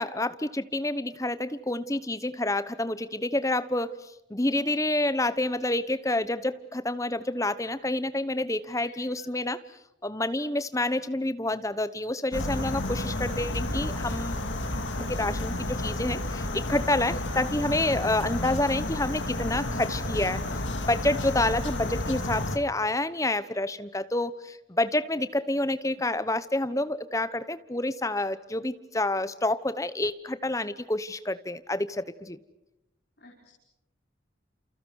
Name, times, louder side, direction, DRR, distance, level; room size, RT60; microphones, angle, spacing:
voice 1, 0.0-3.9 4.3-9.6 10.0-14.4 15.0-20.4 20.8-32.4, left 2 dB, 15° left, 14 dB, 1.0 m, -28 dB
voice 2, 8.8-9.3 17.2-17.4 33.2-33.5, left 2 dB, 55° left, -2 dB, 5.6 m, -51 dB
sound 1, 12.3-22.6, left 1 dB, 80° left, 2.5 m, -31 dB
30.0 x 29.0 x 6.4 m, 0.89 s
head